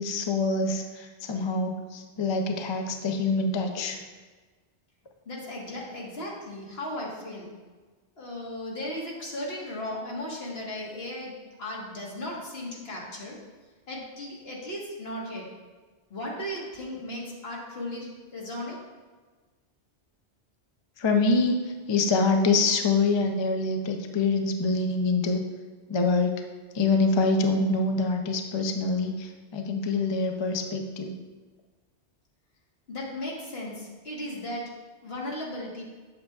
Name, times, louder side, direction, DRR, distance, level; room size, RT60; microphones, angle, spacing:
voice 1, 0.0-4.0 21.0-25.4 25.9-26.3 26.7-31.2, left 3 dB, 40° left, 4 dB, 0.4 m, -25 dB
voice 2, 5.2-7.5 8.2-13.3 13.9-15.4 16.1-18.8 32.9-34.6 35.0-35.8, left 1 dB, 65° left, -3 dB, 1.6 m, -36 dB
7.8 x 7.0 x 2.3 m, 1.3 s
omnidirectional pair, 1.1 m